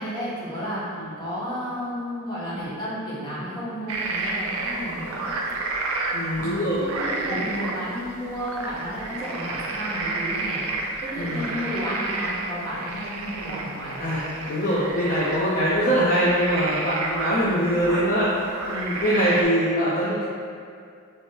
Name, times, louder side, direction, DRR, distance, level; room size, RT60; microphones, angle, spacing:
voice 1, 0.0-5.3 6.4-10.6 11.0-14.1, equal, 20° left, -11 dB, 1.4 m, -32 dB
sound 1, 3.9-19.4, right 3 dB, 70° right, 0.5 m, -31 dB
voice 2, 6.1-6.8 7.2-7.4 11.1-11.4 14.0-20.2, equal, 40° left, -9 dB, 0.6 m, -23 dB
3.3 x 3.2 x 4.3 m, 2.3 s
head